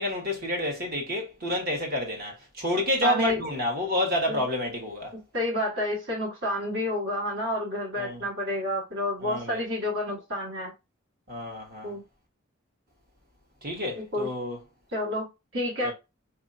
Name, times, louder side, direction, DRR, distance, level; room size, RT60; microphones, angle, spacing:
voice 1, 0.0-5.1 8.0-8.2 9.2-9.6 11.3-11.9 13.6-14.6 15.8-15.9, left 1 dB, 45° right, 1.3 m, -29 dB
voice 2, 3.0-3.4 4.3-4.4 5.3-10.7 11.8-12.0 14.0-14.3 14.9-15.2 15.5-15.9, left 1 dB, 65° right, 1.6 m, -29 dB
4.5 x 2.7 x 2.5 m
head